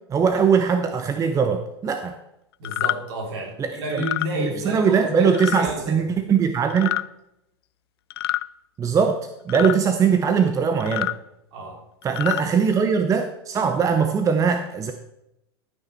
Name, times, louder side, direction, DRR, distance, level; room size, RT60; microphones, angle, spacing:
voice 1, 0.1-2.1 3.6-4.0 4.3-6.9 8.8-9.2 9.5-11.1 12.0-14.9, right 6 dB, 25° right, 7 dB, 0.8 m, -21 dB
sound 1, 2.6-3.0 3.9-4.3 5.3-5.6 6.7-7.0 8.1-8.5 9.5-9.8 10.8-11.2 12.0-12.4, left 15 dB, 65° left, 0.4 m, -26 dB
voice 2, 2.6-6.0 9.5-9.7 11.5-11.8, right 1 dB, 60° right, 1 dB, 3.2 m, -31 dB
13.0 x 5.8 x 4.4 m, 0.84 s
hypercardioid pair, 95°, 14 cm